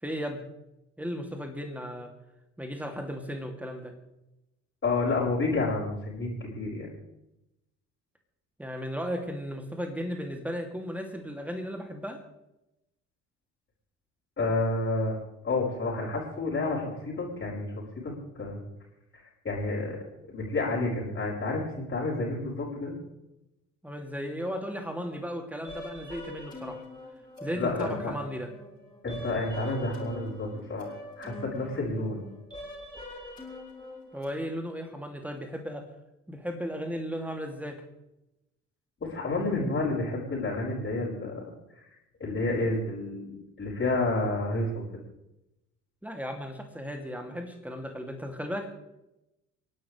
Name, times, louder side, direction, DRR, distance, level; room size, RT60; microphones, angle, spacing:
voice 1, 0.0-0.5 1.0-2.1 2.6-3.9 8.6-12.2 23.8-26.8 27.4-28.5 34.1-35.8 36.3-37.8 46.0-48.7, equal, 5° right, 4 dB, 2.8 m, -35 dB
voice 2, 4.8-6.9 14.4-15.1 15.4-17.7 18.0-18.6 19.1-20.0 20.3-22.9 27.5-28.1 29.0-32.2 39.0-41.4 41.7-41.8 42.2-44.8, left 2 dB, 30° left, -7 dB, 5.5 m, -30 dB
sound 1, 25.6-34.3, left 1 dB, 10° left, 6.3 m, -43 dB
29.0 x 11.5 x 3.4 m, 0.92 s
figure-of-eight pair, 50°, 38 cm